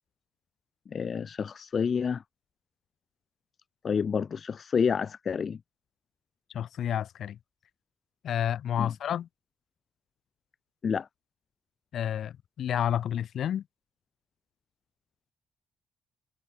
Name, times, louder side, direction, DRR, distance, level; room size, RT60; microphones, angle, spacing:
voice 1, 0.9-2.2 3.8-5.6 8.8-8.9 10.8-11.1, left 6 dB, 45° left, 0.4 m, -29 dB
voice 2, 6.5-7.4 8.2-9.3 11.9-13.6, left 10 dB, 65° left, 0.9 m, -30 dB
cardioid pair, 90°, 0 cm